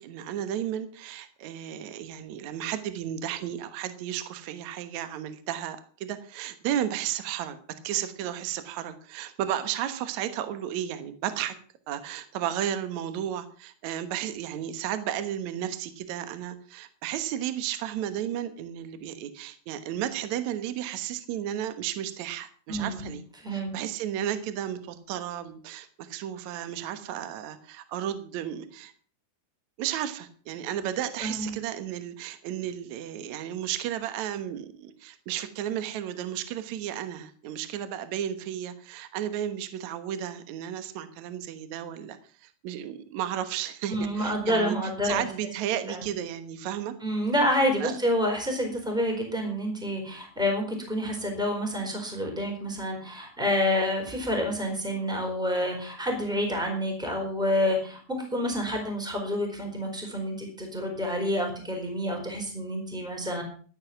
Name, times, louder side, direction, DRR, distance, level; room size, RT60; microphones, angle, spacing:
voice 1, 0.0-7.6 7.8-11.5 11.9-23.2 23.5-28.9 29.8-44.8 45.0-46.9 47.8-48.0, right 10 dB, 65° right, 11 dB, 1.9 m, -33 dB
voice 2, 22.7-23.1 23.4-23.7 31.2-31.6 43.9-45.2 45.9-46.0 47.0-63.4, equal, ahead, 2 dB, 3.8 m, -28 dB
14.0 x 9.8 x 6.0 m, 0.43 s
omnidirectional pair, 4.9 m